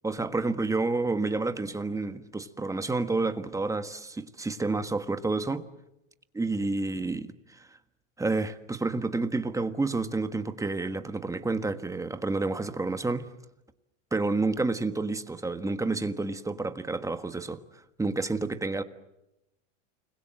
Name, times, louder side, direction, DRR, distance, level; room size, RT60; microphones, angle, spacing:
voice 1, 0.0-5.6 6.3-7.7 8.2-13.3 14.1-18.8, right 3 dB, 10° right, 1.5 m, -29 dB
29.5 x 21.5 x 7.6 m
supercardioid pair, 120°, 37 cm